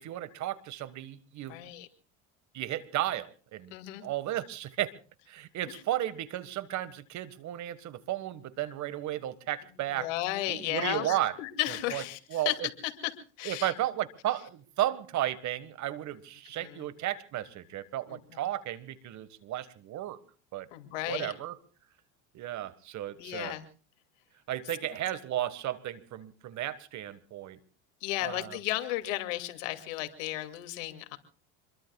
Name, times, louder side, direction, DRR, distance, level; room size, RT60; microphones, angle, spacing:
voice 1, 0.0-1.6 2.5-3.7 4.0-4.9 5.3-10.1 10.5-11.3 11.7-12.0 12.3-12.7 13.4-20.2 20.5-20.7 21.1-21.6 22.3-23.5 24.5-27.6 28.2-28.6, right 13 dB, 45° right, 15 dB, 1.6 m, -34 dB
voice 2, 1.5-1.9 3.7-4.1 9.9-12.6 12.8-13.1 13.4-13.7 16.6-16.9 18.1-18.4 20.7-21.3 23.2-23.6 28.0-31.2, left 16 dB, 80° left, 8 dB, 2.5 m, -34 dB
26.5 x 22.5 x 2.4 m, 0.37 s
supercardioid pair, 105°, 38 cm